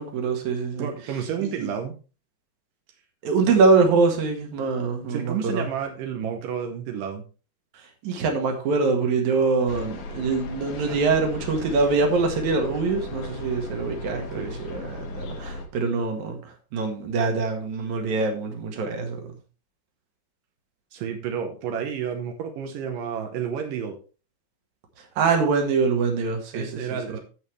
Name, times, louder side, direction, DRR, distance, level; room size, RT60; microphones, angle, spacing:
voice 1, 0.0-0.9 1.4-1.5 3.2-5.6 8.0-16.4 16.7-19.2 25.2-26.9, right 4 dB, 55° right, 2.3 m, -24 dB
voice 2, 0.8-2.0 5.0-7.2 10.9-11.0 14.4-14.6 20.9-24.0 26.5-27.2, right 8 dB, 85° right, 1.9 m, -31 dB
sound 1, 9.7-15.7, left 2 dB, 60° left, 2.2 m, -36 dB
16.0 x 5.4 x 3.3 m
omnidirectional pair, 5.3 m